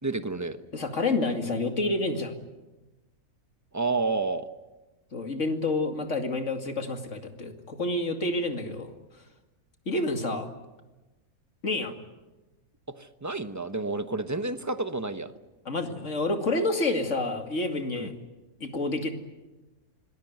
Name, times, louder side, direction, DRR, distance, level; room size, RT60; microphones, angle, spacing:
voice 1, 0.0-0.6 3.7-4.5 13.0-15.3 17.9-18.1, right 3 dB, 15° right, 9 dB, 1.0 m, -30 dB
voice 2, 0.7-2.3 5.1-8.9 9.9-10.5 11.6-11.9 15.6-18.1 18.6-19.1, left 2 dB, 50° left, 5 dB, 2.7 m, -28 dB
25.5 x 19.5 x 9.4 m, 1.1 s
omnidirectional pair, 1.6 m